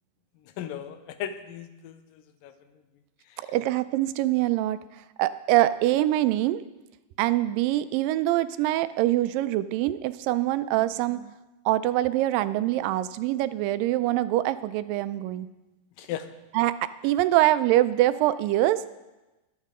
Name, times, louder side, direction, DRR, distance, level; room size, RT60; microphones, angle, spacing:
voice 1, 0.6-2.0 2.4-2.5 16.0-16.3, left 10 dB, 85° left, 10 dB, 2.4 m, -35 dB
voice 2, 3.4-4.8 5.2-6.6 7.2-11.3 11.7-15.5 16.5-18.8, right 15 dB, 90° right, 14 dB, 2.3 m, -24 dB
21.5 x 8.3 x 3.7 m, 1.1 s
omnidirectional pair, 3.9 m